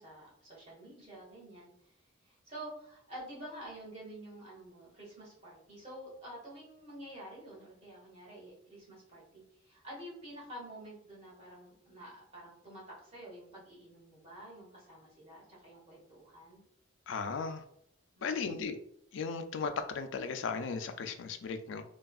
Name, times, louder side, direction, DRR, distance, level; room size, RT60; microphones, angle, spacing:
voice 1, 0.0-1.7 2.2-16.6 18.2-18.5, right 1 dB, 35° right, -6 dB, 1.3 m, -49 dB
voice 2, 17.1-17.6 18.2-18.8 19.1-21.8, left 5 dB, 70° left, 8 dB, 0.3 m, -36 dB
3.4 x 2.2 x 2.3 m, 0.71 s
head